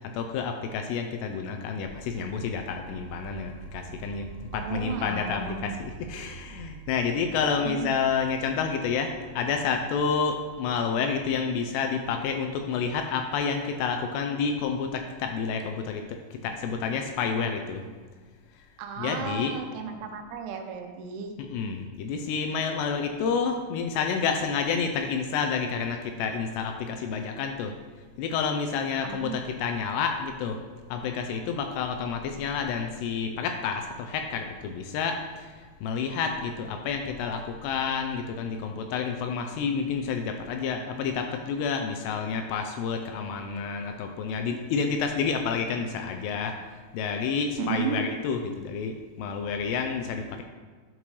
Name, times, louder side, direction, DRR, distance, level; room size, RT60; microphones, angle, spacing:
voice 1, 0.1-4.3 4.5-17.8 19.0-19.5 21.4-27.7 28.2-30.6 30.9-35.5 35.8-46.5 46.9-50.4, left 6 dB, 80° left, 5 dB, 2.5 m, -29 dB
sound 1, 1.8-13.8, right 5 dB, 50° left, 2.6 m, -47 dB
voice 2, 4.5-5.8 7.7-7.9 18.8-21.4 29.0-29.4 47.6-48.0, right 7 dB, 90° right, 5 dB, 3.1 m, -34 dB
11.5 x 5.3 x 3.2 m, 1.4 s
omnidirectional pair, 5.1 m